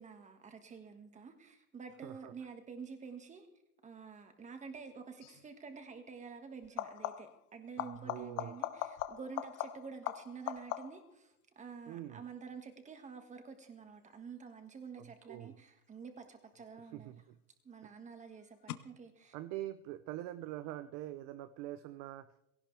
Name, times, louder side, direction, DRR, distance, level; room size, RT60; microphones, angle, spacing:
voice 1, 0.0-3.5 3.8-17.1 17.6-19.3, right 5 dB, 15° right, 6 dB, 1.8 m, -49 dB
voice 2, 2.0-2.3 7.8-8.5 11.9-12.2 15.0-15.5 16.9-17.3 17.8-17.9 19.3-22.4, right 14 dB, 40° right, 12 dB, 0.7 m, -44 dB
sound 1, 5.2-5.5 6.6-7.4 7.8-11.2 16.6-17.2 18.7-18.8, left 13 dB, 80° left, 1.1 m, -41 dB
19.0 x 17.5 x 3.4 m, 0.86 s
supercardioid pair, 145°, 45 cm